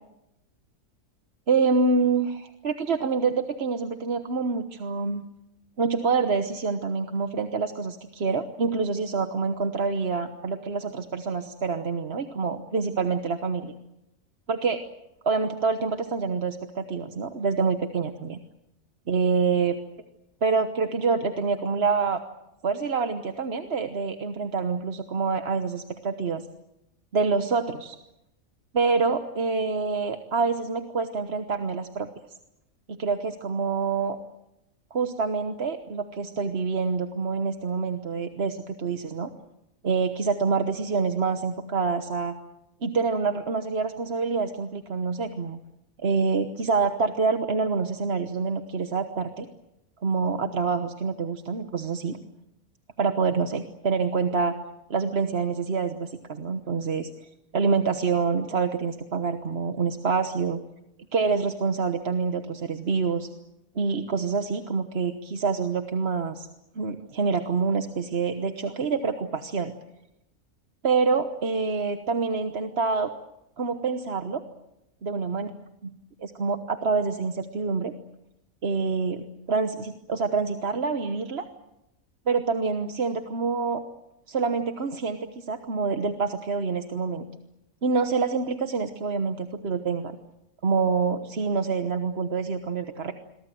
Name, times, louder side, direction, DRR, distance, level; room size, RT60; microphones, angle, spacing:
voice 1, 1.5-5.2 5.8-13.7 14.5-14.8 15.2-18.4 19.1-19.8 20.4-22.2 22.6-26.5 27.1-28.0 28.7-32.1 32.9-34.2 34.9-39.3 39.8-42.3 42.8-45.6 46.0-49.5 50.0-52.2 53.0-54.5 54.9-60.6 61.1-63.3 63.7-66.5 66.7-69.7 70.8-73.1 73.6-74.4 75.0-75.5 75.8-75.9 76.2-77.9 78.6-81.5 82.3-83.8 84.3-87.3 87.8-90.2 90.6-93.1, right 4 dB, 45° right, 8 dB, 1.4 m, -26 dB
27.5 x 23.0 x 7.8 m, 0.88 s
omnidirectional pair, 1.5 m